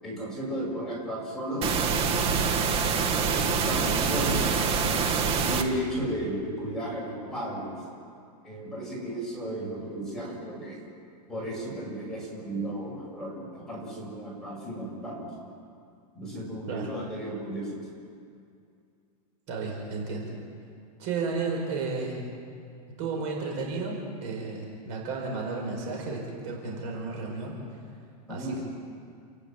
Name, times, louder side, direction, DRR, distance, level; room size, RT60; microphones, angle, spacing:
voice 1, 0.0-1.8 3.2-5.0 5.5-7.7 8.4-10.8 11.3-15.3 16.1-17.8 28.3-28.6, right 1 dB, ahead, -6 dB, 7.4 m, -34 dB
sound 1, 1.6-5.6, right 5 dB, 30° right, 1.6 m, -25 dB
voice 2, 19.5-20.3 21.0-22.2 23.0-27.5 28.3-28.6, right 4 dB, 50° right, 0 dB, 5.5 m, -33 dB
29.5 x 11.5 x 9.3 m, 2.3 s
supercardioid pair, 150°, 21 cm